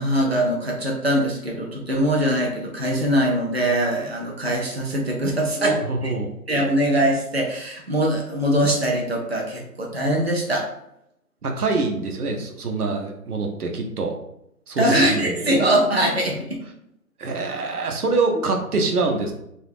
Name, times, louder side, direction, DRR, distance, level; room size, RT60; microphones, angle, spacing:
voice 1, 0.0-5.8 6.0-6.1 6.5-10.7 14.8-16.6, right 1 dB, 45° right, -1 dB, 0.5 m, -22 dB
voice 2, 5.6-6.3 11.4-14.1 14.7-15.4 17.2-19.3, right 3 dB, 75° right, 2 dB, 0.7 m, -25 dB
2.3 x 2.1 x 3.2 m, 0.78 s
figure-of-eight pair, 175°, 45 cm